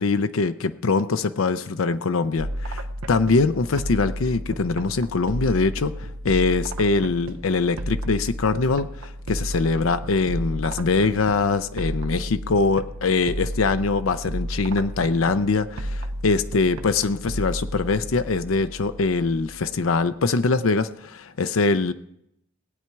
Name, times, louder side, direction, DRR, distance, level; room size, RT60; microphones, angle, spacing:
voice 1, 0.0-21.9, left 4 dB, 75° left, 10 dB, 0.6 m, -23 dB
sound 1, 2.4-20.0, equal, 85° right, 0.9 m, -33 dB
18.5 x 8.8 x 4.6 m, 0.78 s
head